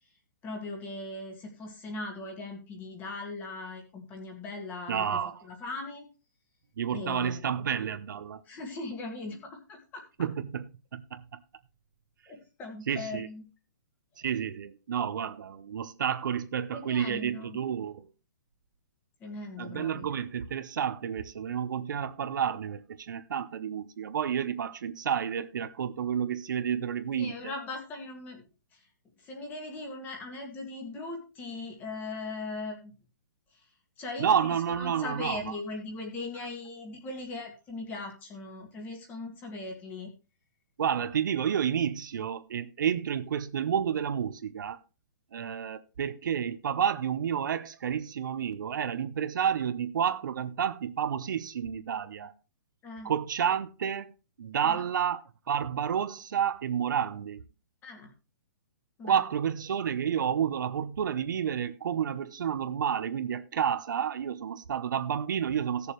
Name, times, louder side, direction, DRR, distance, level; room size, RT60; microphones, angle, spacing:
voice 1, 0.4-6.1 6.9-7.4 8.5-10.0 12.3-13.5 16.7-17.6 19.2-20.1 27.2-28.9 29.2-33.0 33.5-33.6 34.0-40.1 52.8-53.1 54.5-54.9 57.8-58.1 59.0-59.2, left 2 dB, 15° left, 1.9 m, -39 dB
voice 2, 4.9-5.4 6.8-8.4 10.2-10.7 10.9-11.4 12.9-13.3 14.2-18.1 19.6-27.5 34.2-35.4 40.8-44.8 45.3-52.3 53.0-54.1 54.4-57.4 59.0-65.9, right 8 dB, 65° right, 0.9 m, -30 dB
16.5 x 7.0 x 3.2 m
hypercardioid pair, 170°, 11 cm